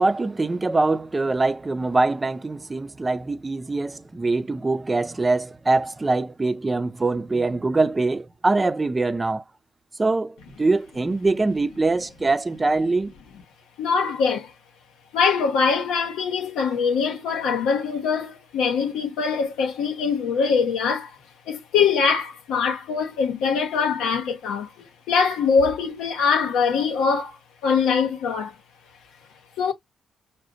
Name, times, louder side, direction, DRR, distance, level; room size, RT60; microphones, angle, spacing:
voice 1, 0.0-9.4 10.0-13.1, right 3 dB, 25° right, 0.6 m, -23 dB
voice 2, 13.8-14.5 15.1-21.1 21.5-28.6 29.6-29.7, left 5 dB, 85° left, 1.0 m, -23 dB
4.9 x 2.2 x 3.8 m
supercardioid pair, 60°, 0 cm